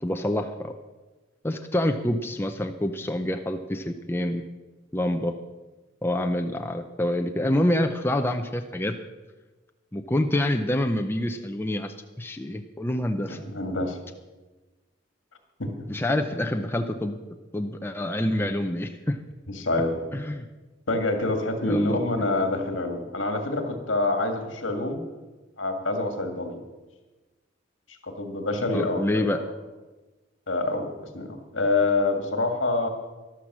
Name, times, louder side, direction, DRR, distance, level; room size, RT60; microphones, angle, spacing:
voice 1, 0.0-0.7 1.4-4.4 4.9-5.3 6.0-9.0 9.9-13.4 15.9-17.2 17.5-19.2 20.1-20.5 21.6-22.0 28.7-29.4, left 1 dB, 10° left, 5 dB, 0.6 m, -27 dB
voice 2, 13.3-14.0 15.6-15.7 19.5-20.0 20.9-25.0 25.6-26.6 28.0-29.4 30.5-32.9, left 2 dB, 75° left, 5 dB, 2.0 m, -26 dB
13.5 x 11.5 x 6.2 m, 1.2 s
head